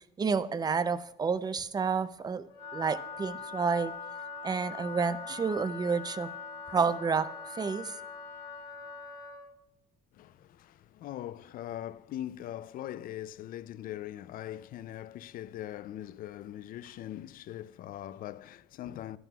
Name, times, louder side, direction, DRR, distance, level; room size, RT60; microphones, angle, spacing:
voice 1, 0.2-2.5 2.7-3.9 4.4-6.3 6.7-7.9, right 5 dB, 25° right, 0.5 m, -30 dB
Wind instrument woodwind instrument, 2.5-9.5, left 5 dB, 80° left, 1.5 m, -42 dB
voice 2, 10.1-19.2, left 12 dB, 60° left, 0.4 m, -41 dB
11.5 x 11.0 x 2.3 m
cardioid pair, 110°, 17 cm